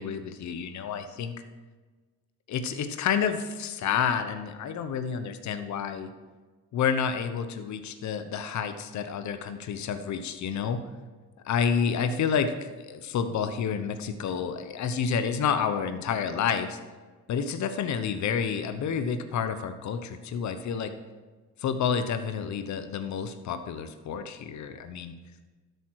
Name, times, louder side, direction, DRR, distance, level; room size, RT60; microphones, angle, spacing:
voice 1, 0.0-1.3 2.5-6.1 6.7-10.8 11.4-12.5 12.8-16.8 17.3-20.9 21.6-25.1, left 7 dB, 70° left, 9 dB, 1.0 m, -29 dB
12.5 x 8.0 x 4.8 m, 1.3 s
cardioid pair, 90°, 30 cm